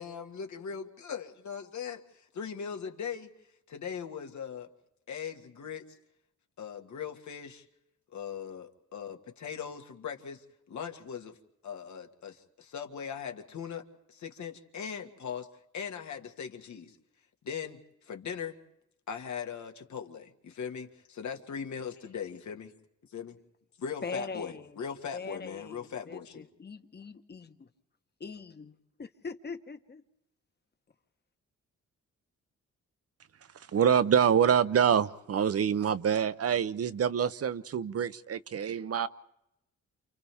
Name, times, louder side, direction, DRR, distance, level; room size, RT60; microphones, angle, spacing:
voice 1, 0.0-3.3 3.7-4.7 5.1-5.9 6.6-7.7 8.1-11.4 11.6-15.5 15.7-17.0 17.4-18.6 19.1-22.7 23.1-23.4 23.8-26.5, left 7 dB, 75° left, 4 dB, 2.0 m, -40 dB
voice 2, 24.0-24.8 25.1-27.7 28.2-30.0, left 4 dB, 35° left, 9 dB, 1.4 m, -42 dB
voice 3, 33.5-39.1, right 8 dB, 55° right, 14 dB, 0.8 m, -26 dB
29.5 x 28.5 x 3.6 m, 0.84 s
cardioid pair, 95°, 30 cm